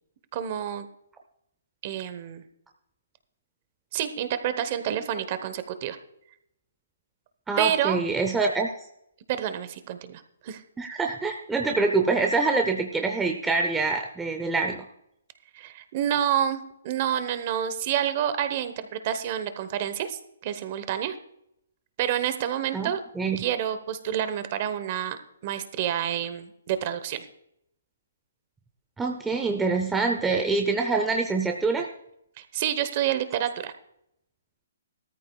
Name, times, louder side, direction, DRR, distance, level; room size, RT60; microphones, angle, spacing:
voice 1, 0.3-0.9 1.8-2.4 3.9-6.0 7.6-8.0 9.3-10.6 15.5-21.2 22.0-23.0 23.4-25.2 25.4-27.3 32.4-33.7, right 10 dB, 30° right, 11 dB, 0.9 m, -28 dB
voice 2, 7.5-8.7 10.8-14.8 22.7-22.9 23.2-23.4 29.0-31.9, right 4 dB, 5° right, 3 dB, 0.6 m, -25 dB
17.0 x 13.5 x 2.3 m, 0.76 s
hypercardioid pair, 170°, 0 cm